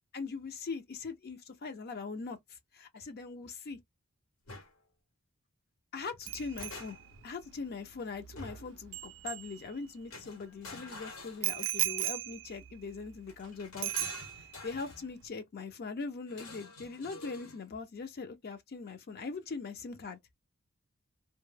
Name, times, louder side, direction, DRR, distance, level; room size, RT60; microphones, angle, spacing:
voice 1, 0.1-3.8 5.9-7.0 7.2-14.1 14.4-20.2, left 4 dB, 50° left, 0.5 m, -41 dB
sound 1, 4.5-4.7 6.1-7.2 8.4-8.8 10.1-12.0 13.3-15.1 16.3-17.6, left 3 dB, 80° left, 1.0 m, -48 dB
Bicycle bell, 6.3-10.1 11.4-13.5 13.8-14.7 15.0-15.2, right 16 dB, 60° right, 0.3 m, -38 dB
2.1 x 2.0 x 3.1 m
head